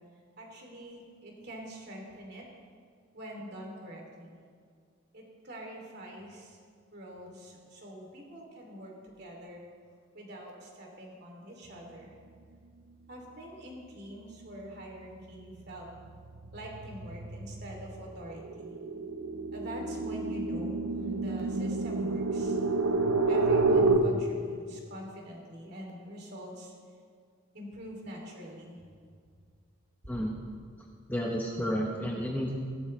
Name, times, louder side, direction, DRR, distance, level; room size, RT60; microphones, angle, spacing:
voice 1, 0.4-2.5 3.1-4.3 5.1-6.6 6.9-9.6 10.1-12.2 13.1-15.9 16.5-18.7 19.5-22.6 23.3-26.7 27.5-28.9 30.0-30.2, equal, 50° right, -1 dB, 2.8 m, -45 dB
sound 1, 14.3-14.7 15.1-24.0, right 3 dB, 85° right, 0.9 m, -29 dB
voice 2, 31.1-32.6, equal, 10° left, -1 dB, 0.9 m, -31 dB
17.5 x 12.5 x 3.2 m, 2.1 s
head